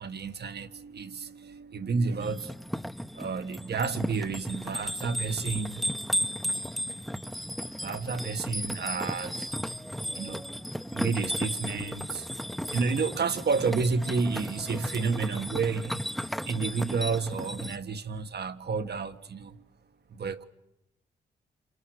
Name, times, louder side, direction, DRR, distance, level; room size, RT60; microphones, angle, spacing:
voice 1, 0.0-2.5 3.2-6.1 7.8-9.5 10.2-10.4 10.9-12.3 12.7-16.0 16.4-19.6 20.2-20.4, right 4 dB, 55° right, 1.6 m, -30 dB
sound 1, 2.2-17.8, equal, ahead, 1.0 m, -35 dB
28.5 x 28.0 x 6.5 m
supercardioid pair, 55°, 20 cm